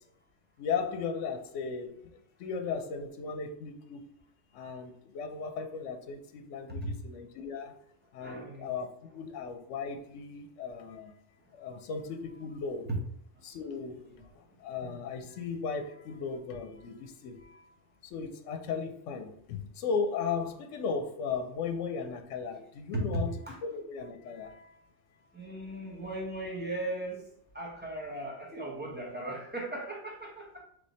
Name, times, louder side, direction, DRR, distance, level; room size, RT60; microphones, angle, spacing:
voice 1, 0.6-2.0 2.4-4.1 4.5-7.7 8.1-8.9 9.1-11.1 11.5-12.9 13.4-14.0 14.3-17.6 18.0-23.3 23.7-24.7, left 5 dB, 80° left, 5 dB, 0.9 m, -36 dB
voice 2, 8.2-8.7 12.9-13.0 13.9-14.3 22.9-23.6 25.3-27.2 27.5-30.6, right 1 dB, 10° right, -3 dB, 1.0 m, -37 dB
3.3 x 3.3 x 4.1 m, 0.68 s
omnidirectional pair, 1.3 m